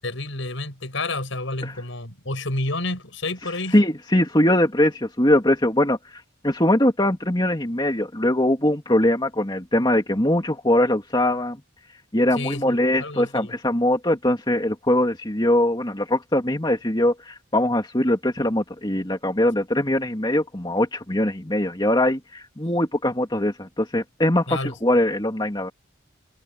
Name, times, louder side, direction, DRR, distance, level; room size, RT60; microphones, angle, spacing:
voice 1, 0.0-3.8 12.4-13.5 24.5-24.7, left 2 dB, 70° left, 6.3 m, -30 dB
voice 2, 3.7-6.0 6.4-11.6 12.1-25.7, left 1 dB, 20° left, 2.7 m, -21 dB
head